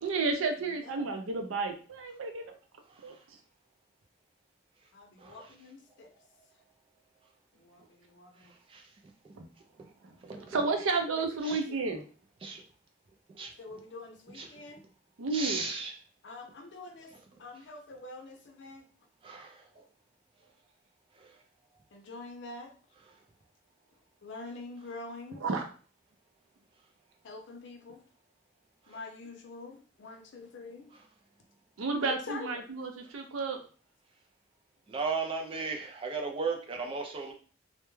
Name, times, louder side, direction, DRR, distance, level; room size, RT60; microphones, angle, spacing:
voice 1, 0.0-2.5 3.0-3.2 9.4-9.5 10.0-10.1 10.5-12.0 15.2-15.6 25.4-25.6 31.8-33.6, right 3 dB, 90° right, 5 dB, 0.5 m, -31 dB
voice 2, 4.9-6.1 7.5-8.5 11.1-11.6 13.6-14.8 16.2-17.1 17.4-18.8 21.9-22.7 24.2-25.4 27.2-28.0 28.9-30.9 32.0-32.6, left 3 dB, 60° left, 3 dB, 0.5 m, -45 dB
voice 3, 10.2-10.6 11.4-11.6 12.4-12.6 13.3-13.5 14.4-14.5 15.3-15.9 19.2-19.6 21.2-21.3 34.9-37.3, right 4 dB, 25° right, 2 dB, 0.4 m, -35 dB
2.2 x 2.1 x 3.0 m, 0.41 s
head